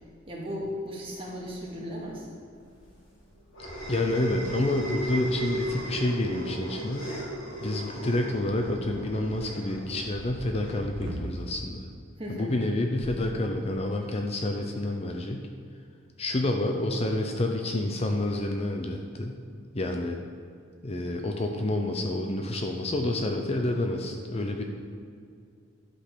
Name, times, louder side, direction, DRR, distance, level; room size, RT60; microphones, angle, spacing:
voice 1, 0.3-2.3 12.2-12.6, equal, 30° right, -4 dB, 2.2 m, -36 dB
sound 1, 2.7-11.5, right 1 dB, 80° left, 1.8 m, -36 dB
voice 2, 3.9-7.1 7.6-11.8 12.3-15.5 16.2-19.4 19.7-20.2 20.8-24.6, left 1 dB, 30° left, 3 dB, 0.7 m, -28 dB
sound 2, 8.3-11.5 12.8-13.2, right 1 dB, 80° right, 1.4 m, -41 dB
11.5 x 5.4 x 6.2 m, 2.3 s
head